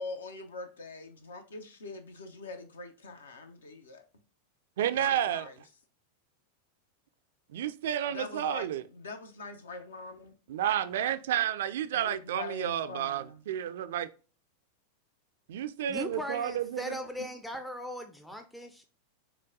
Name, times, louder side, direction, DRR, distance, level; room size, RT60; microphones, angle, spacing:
voice 1, 0.0-4.0 4.9-5.6 8.1-10.4 11.9-13.4, left 3 dB, 65° left, 0.8 m, -43 dB
voice 2, 4.8-5.5 7.5-8.8 10.5-14.1 15.5-17.0, right 10 dB, 60° right, 0.4 m, -31 dB
voice 3, 15.9-18.8, left 1 dB, 5° left, 0.5 m, -39 dB
6.0 x 2.3 x 3.7 m
figure-of-eight pair, 90°, 0 cm